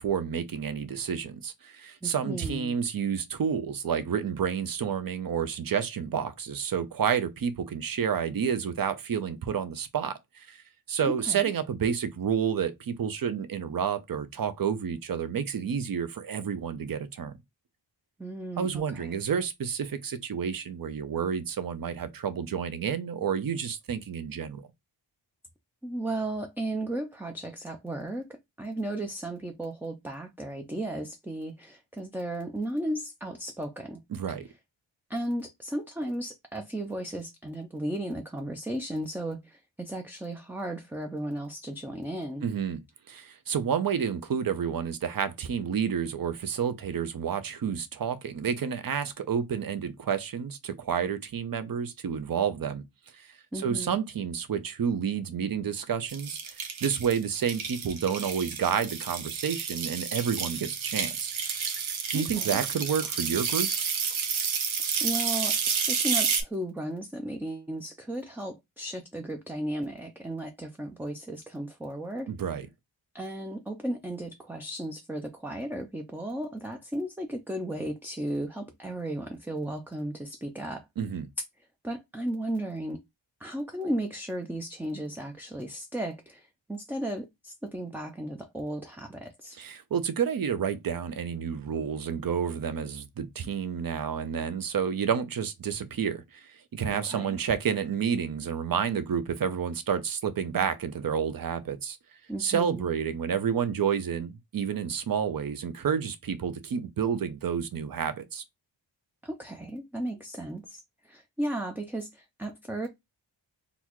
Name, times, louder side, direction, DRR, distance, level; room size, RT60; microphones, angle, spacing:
voice 1, 0.0-10.6 10.9-17.4 18.6-24.6 34.1-34.5 42.4-42.8 43.1-52.8 53.1-61.3 62.1-63.7 72.3-72.7 81.0-81.3 89.6-102.0 102.4-108.4, right 7 dB, 50° right, 0.6 m, -30 dB
voice 2, 2.0-2.7 11.0-11.5 18.2-19.2 25.8-34.0 35.1-42.4 53.5-54.0 62.1-62.6 65.0-72.3 73.1-80.8 81.8-83.0 83.4-89.6 96.9-97.4 102.3-102.9 109.2-112.9, right 1 dB, 5° right, 0.4 m, -35 dB
sound 1, 56.1-66.4, right 6 dB, 90° right, 0.7 m, -30 dB
4.0 x 2.3 x 3.0 m
wide cardioid pair, 75°, 46 cm